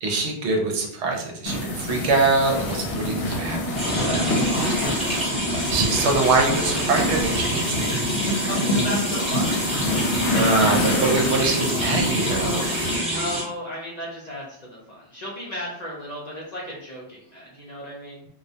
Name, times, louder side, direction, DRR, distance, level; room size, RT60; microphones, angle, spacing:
voice 1, 0.0-3.9 5.7-8.0 10.3-13.2, right 3 dB, 75° right, 1 dB, 0.8 m, -24 dB
sound 1, 1.5-13.0, left 1 dB, 80° left, 0.9 m, -26 dB
sound 2, 3.8-13.4, equal, 10° right, 0.5 m, -28 dB
voice 2, 4.0-6.4 8.3-10.4 11.1-11.6 13.1-18.2, equal, 50° left, -4 dB, 0.5 m, -35 dB
2.2 x 2.1 x 2.6 m, 0.69 s
omnidirectional pair, 1.2 m